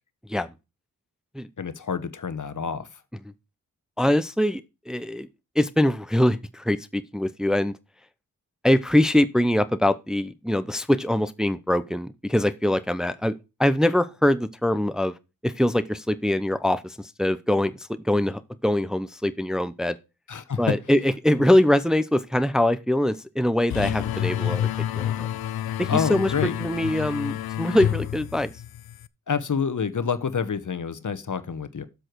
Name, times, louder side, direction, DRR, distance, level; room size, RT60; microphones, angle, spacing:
voice 1, 1.6-2.9 20.3-20.6 25.9-26.5 29.3-31.9, left 6 dB, 55° left, 1.1 m, -28 dB
voice 2, 4.0-5.3 5.6-7.7 8.6-15.1 15.4-20.0 20.6-24.7 25.0-25.3 25.8-28.5, left 1 dB, ahead, 0.7 m, -23 dB
sound 1, 23.7-29.1, left 11 dB, 90° left, 0.5 m, -29 dB
7.6 x 6.5 x 4.6 m
cardioid pair, 45°, 36 cm